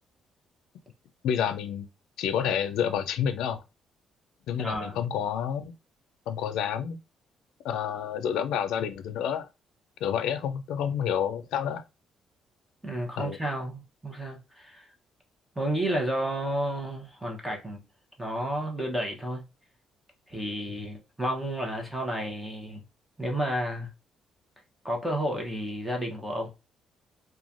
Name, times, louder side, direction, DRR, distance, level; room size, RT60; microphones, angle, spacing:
voice 1, 1.2-1.9 2.2-3.6 4.5-5.7 6.3-7.0 7.6-9.5 10.0-11.8 13.2-13.4, left 8 dB, 90° left, 0.4 m, -29 dB
voice 2, 4.6-5.0 12.8-14.8 15.6-17.8 18.2-19.5 20.3-22.8 23.2-23.9 24.8-26.5, right 1 dB, 5° right, 0.8 m, -31 dB
3.0 x 2.2 x 2.5 m
cardioid pair, 155°, 0 cm